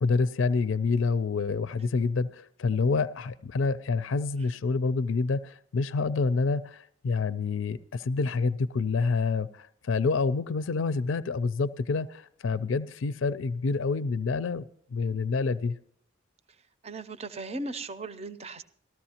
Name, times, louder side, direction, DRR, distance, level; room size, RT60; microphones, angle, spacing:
voice 1, 0.0-15.8, left 4 dB, 85° left, 15 dB, 0.4 m, -27 dB
voice 2, 16.8-18.6, right 2 dB, 30° right, 12 dB, 0.6 m, -37 dB
18.5 x 14.0 x 2.8 m, 0.65 s
head